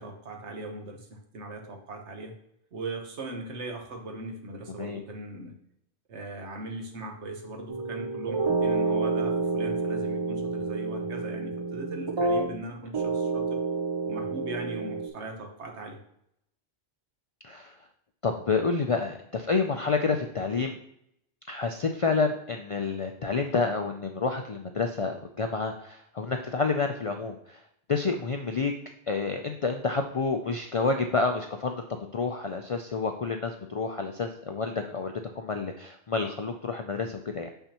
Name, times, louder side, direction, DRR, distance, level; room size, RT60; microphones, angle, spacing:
voice 1, 0.0-2.3 2.7-5.5 6.1-13.6 14.1-16.0, right 2 dB, 85° right, 3 dB, 1.3 m, -39 dB
voice 2, 4.7-5.0 17.4-17.8 18.2-20.8 21.5-27.6 27.9-28.7 29.1-31.8 32.1-37.5, left 4 dB, 60° left, 4 dB, 0.3 m, -29 dB
sound 1, 7.7-12.6 12.9-15.1, right 3 dB, 35° right, 0.5 m, -29 dB
6.7 x 5.7 x 2.9 m, 0.73 s
omnidirectional pair, 1.1 m